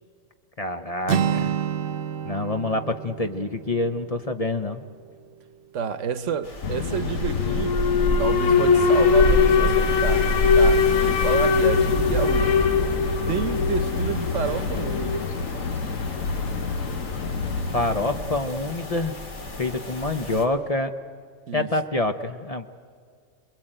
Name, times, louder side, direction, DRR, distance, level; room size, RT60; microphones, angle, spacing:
voice 1, 0.6-1.5 2.2-4.8 17.7-19.1 19.6-20.9 21.5-22.7, left 2 dB, 35° left, 0.8 m, -26 dB
Acoustic guitar, 1.1-5.0, right 8 dB, 50° right, 0.9 m, -29 dB
voice 2, 5.7-7.8 8.2-12.7 13.3-15.3 21.5-21.7, right 8 dB, 70° right, 1.2 m, -30 dB
sound 1, 6.4-20.5, left 1 dB, 65° left, 2.5 m, -35 dB
Alarm, 6.6-18.6, left 4 dB, 80° left, 1.5 m, -22 dB
27.0 x 21.5 x 8.9 m
omnidirectional pair, 1.3 m